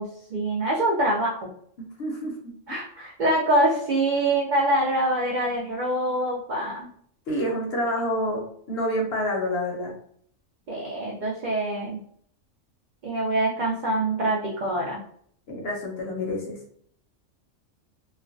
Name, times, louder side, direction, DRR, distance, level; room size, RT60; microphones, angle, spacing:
voice 1, 0.0-1.5 2.7-6.9 10.7-12.0 13.0-15.0, right 1 dB, 70° right, -3 dB, 0.4 m, -25 dB
voice 2, 1.8-2.5 7.3-9.9 15.5-16.6, equal, 60° left, 0 dB, 0.7 m, -28 dB
2.3 x 2.1 x 2.5 m, 0.63 s
omnidirectional pair, 1.3 m